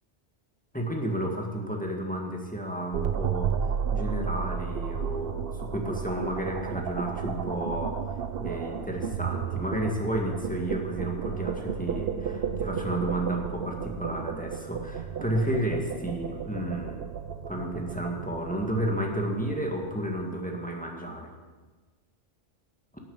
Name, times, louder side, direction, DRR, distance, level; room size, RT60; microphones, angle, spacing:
voice 1, 0.7-8.0 8.4-17.0 17.5-21.3, right 1 dB, 5° left, 0 dB, 1.9 m, -32 dB
sound 1, 2.9-20.2, right 7 dB, 55° right, 0.9 m, -33 dB
12.5 x 8.8 x 8.7 m, 1.3 s
omnidirectional pair, 1.2 m